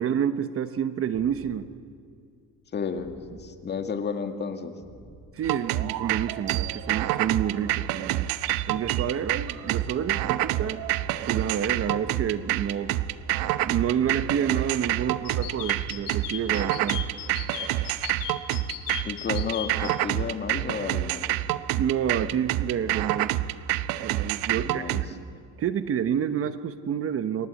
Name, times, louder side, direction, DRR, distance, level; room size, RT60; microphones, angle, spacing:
voice 1, 0.0-1.7 5.3-8.3 8.7-10.9 11.2-13.0 13.6-17.0 21.8-23.4 24.0-25.3 25.6-27.5, right 8 dB, 40° right, 11 dB, 1.1 m, -29 dB
sound 1, 1.1-1.6 3.0-3.5 4.8-5.3 6.7-7.1 8.5-16.4 17.7-18.2, right 2 dB, 15° right, 3.8 m, -48 dB
voice 2, 2.7-4.8 19.0-21.2 24.6-25.0, left 5 dB, 30° left, 6 dB, 2.1 m, -32 dB
sound 2, 5.4-25.0, right 15 dB, 80° right, 0.9 m, -27 dB
sound 3, 15.2-19.9, left 11 dB, 75° left, 3.1 m, -36 dB
29.5 x 22.0 x 8.5 m, 2.4 s
cardioid pair, 135°, 34 cm